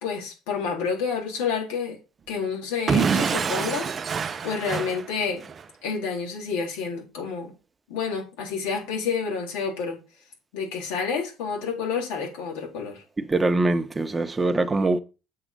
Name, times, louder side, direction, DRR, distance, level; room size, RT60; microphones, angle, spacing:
voice 1, 0.0-2.0 2.3-3.9 4.1-5.4 5.8-7.5 7.9-10.0 10.5-13.0, left 5 dB, 85° left, 3.6 m, -29 dB
Explosion / Shatter, 2.9-5.6, right 6 dB, 40° right, 0.8 m, -26 dB
voice 2, 13.2-15.0, right 2 dB, 20° right, 1.2 m, -23 dB
7.6 x 5.4 x 5.3 m
supercardioid pair, 75°, 0 cm